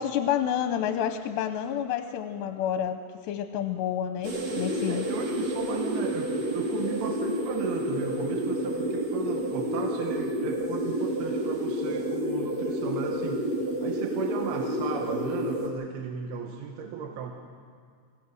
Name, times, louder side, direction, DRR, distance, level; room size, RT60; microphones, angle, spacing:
voice 1, 0.0-5.1, left 9 dB, 85° left, 8 dB, 2.8 m, -29 dB
sound 1, 4.2-15.7, equal, 40° right, 3.6 m, -29 dB
voice 2, 4.9-17.3, right 7 dB, 70° right, 3 dB, 2.8 m, -36 dB
25.0 x 16.5 x 6.3 m, 2.2 s
omnidirectional pair, 5.1 m